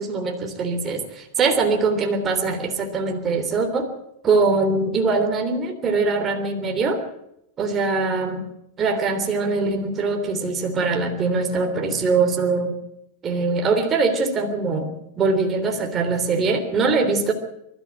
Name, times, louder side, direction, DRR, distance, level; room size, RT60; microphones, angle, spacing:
voice 1, 0.0-3.9 4.2-7.0 7.6-8.4 8.8-12.8 13.2-17.3, right 4 dB, 25° right, 4 dB, 3.4 m, -22 dB
23.0 x 13.0 x 9.1 m, 0.80 s
supercardioid pair, 140°, 0 cm